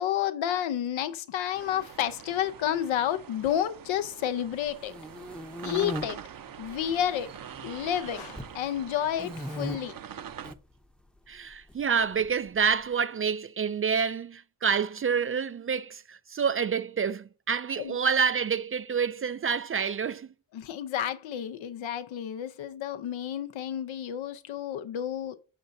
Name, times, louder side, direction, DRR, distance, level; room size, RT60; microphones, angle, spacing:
voice 1, 0.0-4.9 5.6-6.2 6.6-7.3 7.6-10.0 17.8-18.0 20.5-25.4, left 10 dB, 80° left, 0.8 m, -30 dB
sound 1, 1.5-10.5, right 8 dB, 45° right, 0.7 m, -44 dB
sound 2, 4.6-6.0 6.7-7.3 7.6-8.5 9.2-9.8 10.3-10.6 11.7-12.6, equal, ahead, 0.7 m, -37 dB
voice 2, 11.3-20.3, right 6 dB, 30° right, 0.4 m, -28 dB
6.9 x 6.6 x 2.7 m
supercardioid pair, 60°, 46 cm